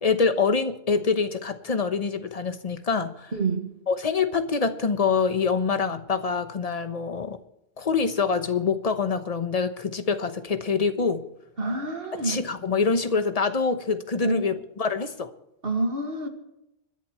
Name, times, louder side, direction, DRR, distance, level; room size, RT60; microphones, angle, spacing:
voice 1, 0.0-3.3 3.9-7.4 7.8-11.2 12.2-15.3, left 5 dB, 35° left, 9 dB, 1.1 m, -25 dB
voice 2, 3.3-3.7 11.6-12.4 14.2-14.4 15.6-16.3, right 3 dB, 60° right, 4 dB, 2.3 m, -27 dB
25.5 x 11.0 x 3.2 m, 0.87 s
omnidirectional pair, 1.1 m